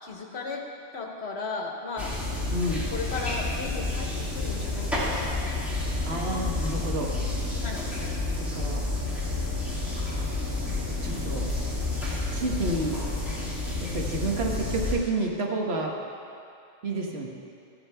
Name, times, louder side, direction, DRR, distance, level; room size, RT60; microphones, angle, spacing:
voice 1, 0.0-0.6 0.9-2.1 2.9-5.6 5.9-6.2 7.6-7.8, left 3 dB, 70° left, 2 dB, 1.2 m, -36 dB
sound 1, 2.0-14.9, left 2 dB, ahead, 1.9 m, -30 dB
voice 2, 2.5-2.9 6.0-7.1 8.4-8.8 9.7-10.3 11.0-11.5 12.3-13.0 13.8-15.9 16.8-17.3, right 2 dB, 65° right, 0 dB, 1.4 m, -30 dB
13.5 x 8.8 x 3.3 m, 2.5 s
omnidirectional pair, 1.2 m